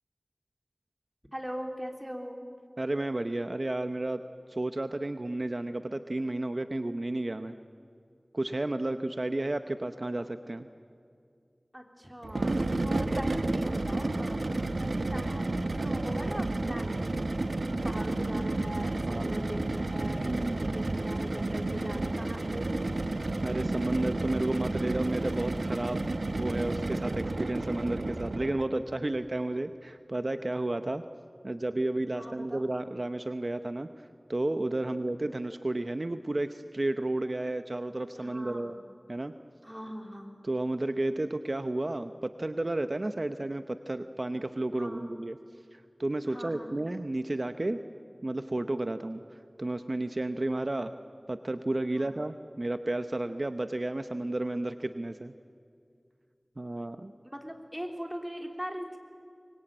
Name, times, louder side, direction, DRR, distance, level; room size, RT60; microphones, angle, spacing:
voice 1, 1.3-2.4 11.7-17.0 17.5-22.9 32.1-32.6 34.8-35.0 38.2-38.9 39.6-40.3 44.7-45.1 46.3-46.7 51.9-52.2 57.2-59.0, equal, 10° right, 3 dB, 3.5 m, -41 dB
voice 2, 2.8-4.2 4.5-7.6 8.3-10.7 19.1-19.4 20.2-20.7 23.4-31.0 31.4-38.7 39.1-39.3 40.4-45.4 45.7-47.8 48.2-50.9 51.3-55.3 56.6-57.1, right 2 dB, 55° right, 9 dB, 0.8 m, -32 dB
sound 1, 12.2-28.7, right 2 dB, 85° right, 1.1 m, -31 dB
24.5 x 22.0 x 9.1 m, 2.3 s
wide cardioid pair, 45°, 0 cm